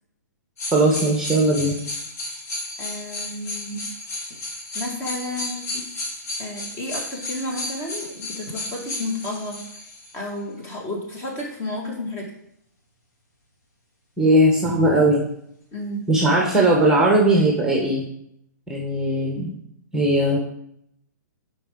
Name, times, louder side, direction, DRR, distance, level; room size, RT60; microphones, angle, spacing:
sound 1, 0.6-10.1 10.7-10.8, left 2 dB, 55° left, 2.0 m, -33 dB
voice 1, 0.7-1.7 14.2-15.2 16.1-18.0 18.7-19.5 19.9-20.4, right 1 dB, 5° right, 0 dB, 1.0 m, -18 dB
voice 2, 2.8-3.8 4.7-5.8 6.4-9.6 10.1-12.3 15.7-16.0, left 1 dB, 25° left, 0 dB, 1.8 m, -31 dB
7.0 x 4.8 x 3.7 m, 0.73 s
hypercardioid pair, 130°, 10 cm